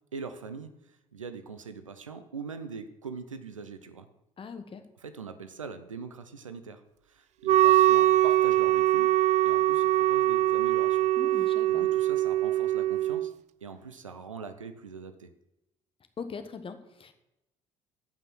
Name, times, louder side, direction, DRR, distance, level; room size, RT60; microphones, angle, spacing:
voice 1, 0.1-4.1 5.0-9.1 9.4-11.1 11.4-13.3 13.6-15.3, right 5 dB, 90° right, 10 dB, 0.8 m, -42 dB
voice 2, 4.4-4.9 11.2-11.9 16.2-17.1, left 5 dB, 35° left, 9 dB, 1.5 m, -41 dB
Wind instrument woodwind instrument, 7.4-13.3, right 15 dB, 45° right, 0.4 m, -23 dB
15.5 x 5.8 x 6.1 m, 0.91 s
figure-of-eight pair, 55°, 16 cm